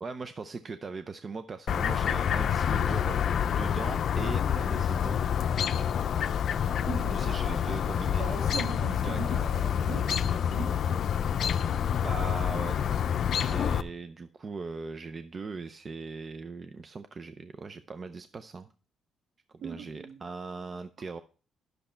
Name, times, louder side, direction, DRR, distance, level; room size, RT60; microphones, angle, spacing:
voice 1, 0.0-5.2 7.1-8.3 9.0-9.4 12.0-12.8 13.4-18.7 19.6-21.2, right 4 dB, 40° right, 0.6 m, -40 dB
Chirp tweet, 1.7-13.8, left 8 dB, 60° left, 0.5 m, -28 dB
voice 2, 6.9-7.3 8.2-10.8 19.6-20.2, right 5 dB, 70° right, 2.3 m, -40 dB
10.5 x 6.6 x 4.4 m
cardioid pair, 90°, 0 cm